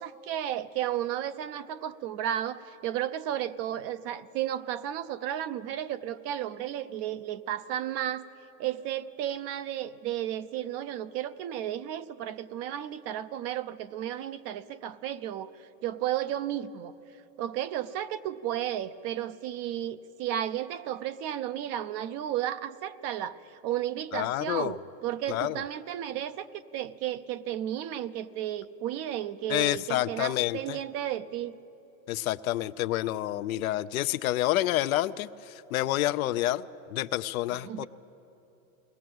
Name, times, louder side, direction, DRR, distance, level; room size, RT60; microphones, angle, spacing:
voice 1, 0.0-8.2 8.6-16.9 17.4-31.5 37.6-37.9, right 11 dB, 35° right, 14 dB, 0.6 m, -33 dB
voice 2, 24.1-24.8 25.3-25.6 29.5-30.8 32.1-36.6 36.9-37.9, left 15 dB, 80° left, 12 dB, 0.6 m, -28 dB
21.0 x 18.5 x 7.7 m, 2.9 s
supercardioid pair, 135°, 42 cm